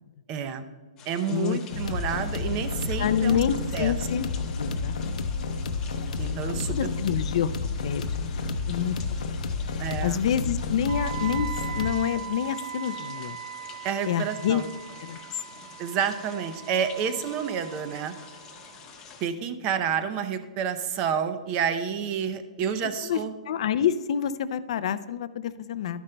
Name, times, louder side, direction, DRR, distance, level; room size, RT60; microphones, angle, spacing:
voice 1, 0.3-0.6 1.1-3.4 3.7-3.9 6.2-6.8 9.8-10.2 13.8-14.7 15.8-18.1 19.2-23.3, right 7 dB, 25° right, 10 dB, 0.6 m, -29 dB
sound 1, 1.0-19.3, left 6 dB, 15° left, 1.0 m, -48 dB
voice 2, 1.3-1.6 3.0-4.3 4.6-5.3 6.7-7.5 7.8-8.0 8.7-9.0 10.0-11.5 11.8-13.4 14.1-14.6 15.0-15.2 23.1-23.2 23.5-26.0, left 9 dB, 50° left, 14 dB, 0.4 m, -27 dB
sound 2, 1.7-11.9, left 4 dB, 75° left, 0.8 m, -30 dB
Wind instrument woodwind instrument, 10.9-18.8, right 10 dB, 60° right, 0.8 m, -40 dB
12.5 x 10.0 x 2.2 m, 1.4 s
hypercardioid pair, 165°, 4 cm